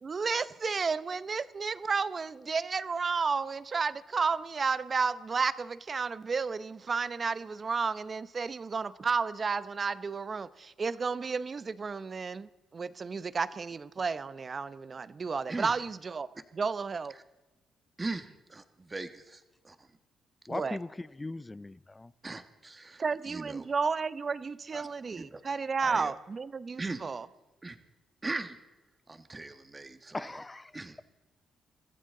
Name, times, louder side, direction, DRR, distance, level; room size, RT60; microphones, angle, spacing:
voice 1, 0.0-17.1 20.5-20.8 23.0-27.3, right 5 dB, 40° right, 0.8 m, -32 dB
voice 2, 18.0-19.9 22.2-23.7 24.7-24.9 25.2-25.4 25.8-26.1 26.8-27.1 27.6-27.8 28.2-28.6 29.1-30.4 30.7-31.0, right 3 dB, 25° right, 1.5 m, -39 dB
voice 3, 20.5-22.1 30.1-30.7, left 2 dB, 20° left, 0.6 m, -39 dB
24.0 x 14.5 x 3.8 m
cardioid pair, 85°, 0 cm